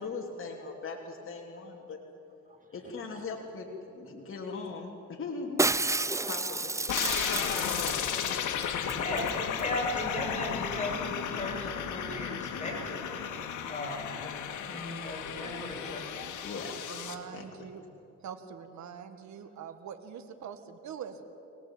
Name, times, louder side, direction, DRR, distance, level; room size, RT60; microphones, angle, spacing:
voice 1, 0.0-2.0 2.7-5.7 6.2-6.8 16.4-16.7 17.3-17.7, left 4 dB, 45° left, 0 dB, 3.1 m, -39 dB
voice 2, 2.4-3.0 4.2-4.3 14.5-15.1 19.3-19.7, right 3 dB, 25° right, 0 dB, 6.9 m, -61 dB
Shatter, 5.6-8.3 8.6-8.7 8.9-9.3 9.6-9.7, right 2 dB, 10° right, 0.5 m, -30 dB
sound 1, 6.9-17.1, left 8 dB, 80° left, 2.0 m, -34 dB
voice 3, 8.9-13.1 13.7-14.3 14.6-16.1, left 1 dB, 25° left, 0 dB, 7.6 m, -36 dB
voice 4, 16.9-17.8 18.2-21.2, right 7 dB, 70° right, 7 dB, 1.8 m, -44 dB
25.0 x 18.5 x 8.9 m, 2.9 s
cardioid pair, 90°, 30 cm